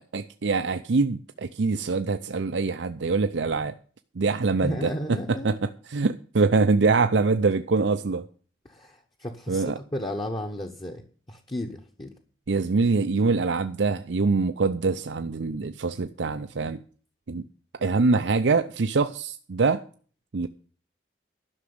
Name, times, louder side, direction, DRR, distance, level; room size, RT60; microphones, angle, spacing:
voice 1, 0.1-3.7 4.2-8.2 9.5-9.8 12.5-16.8 17.3-17.4 17.8-19.8 20.3-20.5, right 4 dB, 85° right, 0.6 m, -24 dB
voice 2, 4.6-5.5 8.6-11.0 11.3-12.1, equal, 25° left, 1.0 m, -33 dB
12.0 x 6.2 x 9.5 m
head